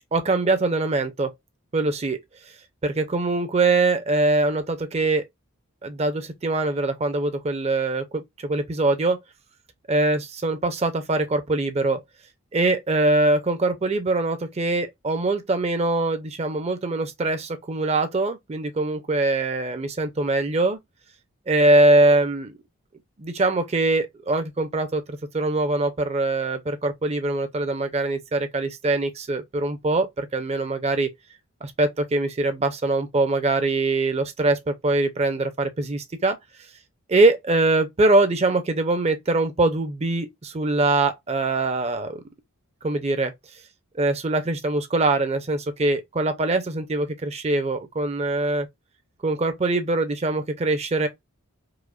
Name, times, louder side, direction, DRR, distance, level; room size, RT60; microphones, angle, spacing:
voice 1, 0.1-1.3 1.7-2.2 2.8-5.2 5.8-9.2 9.9-12.0 12.5-20.8 21.5-22.5 23.2-31.1 31.6-36.4 37.1-42.2 42.8-43.3 44.0-48.7 49.2-51.1, right 2 dB, 30° right, 0.5 m, -23 dB
4.8 x 2.0 x 2.4 m
head